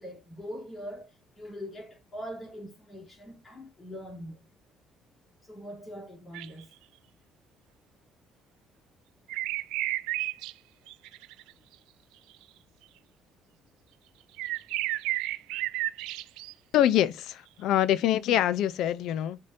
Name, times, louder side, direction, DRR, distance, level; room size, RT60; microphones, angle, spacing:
voice 1, 0.0-4.5 5.4-6.7 15.4-15.6, equal, 25° left, 3.4 m, -42 dB
sound 1, 6.3-6.6 9.3-10.5 10.9-11.5 14.4-16.5, right 17 dB, 90° right, 0.5 m, -32 dB
voice 2, 16.7-19.4, left 12 dB, 75° left, 0.6 m, -25 dB
8.2 x 5.2 x 2.6 m
cardioid pair, 95°, 0 cm